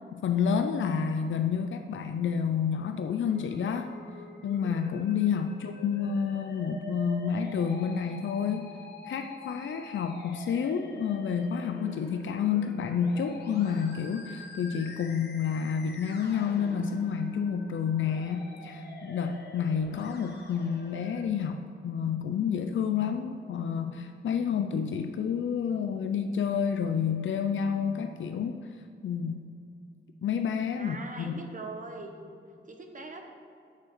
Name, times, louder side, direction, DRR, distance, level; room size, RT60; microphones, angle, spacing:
voice 1, 0.1-3.9 4.4-8.8 9.1-28.8 29.0-29.5 30.2-31.4, left 7 dB, 80° left, 6 dB, 0.5 m, -29 dB
Musical instrument, 3.3-21.2, left 2 dB, 60° left, 1.3 m, -46 dB
voice 2, 5.3-5.7 30.8-32.1 32.6-33.2, right 3 dB, 40° right, 3 dB, 1.0 m, -42 dB
7.4 x 6.4 x 6.0 m, 2.5 s
wide cardioid pair, 145°, 20 cm